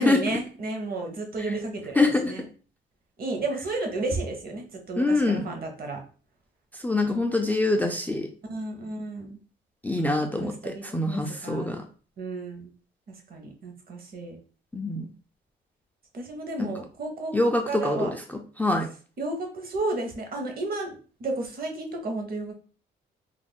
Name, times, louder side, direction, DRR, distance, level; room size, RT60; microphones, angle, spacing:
voice 1, 0.0-2.4 3.2-6.0 7.1-7.2 8.5-9.4 10.2-11.8 12.2-12.7 13.3-14.4 16.1-17.3 17.7-18.1 19.2-20.9 21.2-22.5, right 2 dB, 50° right, 3 dB, 0.8 m, -32 dB
voice 2, 2.0-2.3 5.0-5.5 6.8-8.3 9.8-11.8 14.7-15.1 16.6-16.7 17.3-18.2 18.6-18.9, left 2 dB, 10° left, 3 dB, 0.3 m, -24 dB
2.4 x 2.0 x 3.4 m, 0.39 s
cardioid pair, 90°, 20 cm